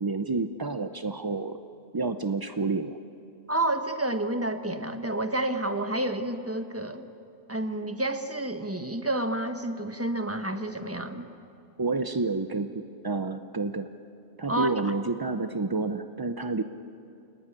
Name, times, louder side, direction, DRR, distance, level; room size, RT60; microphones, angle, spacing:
voice 1, 0.0-1.6 1.9-3.0 11.8-13.9 14.4-16.6, right 3 dB, 35° right, 9 dB, 0.3 m, -29 dB
voice 2, 3.5-7.0 7.5-11.3 14.5-14.9, right 1 dB, 10° right, 8 dB, 1.1 m, -29 dB
29.0 x 18.0 x 9.9 m, 2.8 s
omnidirectional pair, 1.4 m